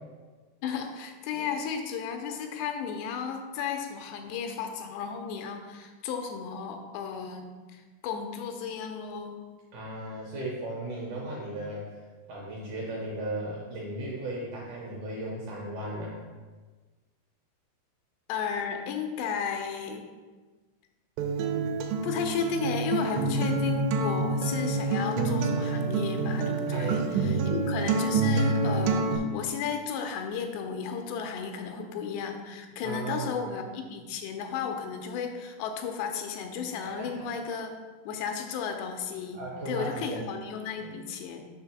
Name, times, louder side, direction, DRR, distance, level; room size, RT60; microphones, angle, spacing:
voice 1, 0.6-9.4 18.3-20.1 22.0-37.7 38.1-39.4 39.7-41.5, left 6 dB, 90° left, 4 dB, 2.8 m, -34 dB
voice 2, 9.7-11.9 12.3-16.2 26.7-27.7 32.8-33.6 36.8-37.3 39.4-40.2 40.8-41.0, right 1 dB, 70° right, -4 dB, 1.9 m, -36 dB
Acoustic guitar, 21.2-29.2, right 3 dB, 85° right, 2.7 m, -27 dB
6.6 x 3.4 x 5.9 m, 1.3 s
omnidirectional pair, 4.8 m